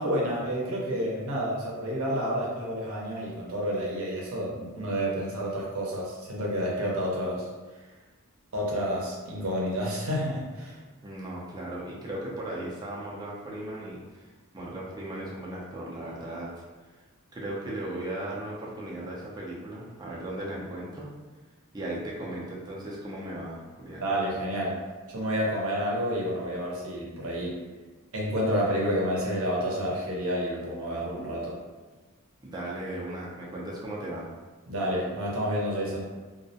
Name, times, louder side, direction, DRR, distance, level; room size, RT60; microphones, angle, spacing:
voice 1, 0.0-7.5 8.5-10.8 24.0-24.8 25.1-27.6 28.1-31.5 34.7-36.1, equal, 70° right, -4 dB, 0.6 m, -29 dB
voice 2, 11.0-17.0 17.3-21.1 21.7-24.0 32.4-34.3, right 1 dB, 20° right, -5 dB, 0.4 m, -37 dB
2.3 x 2.0 x 2.6 m, 1.3 s
head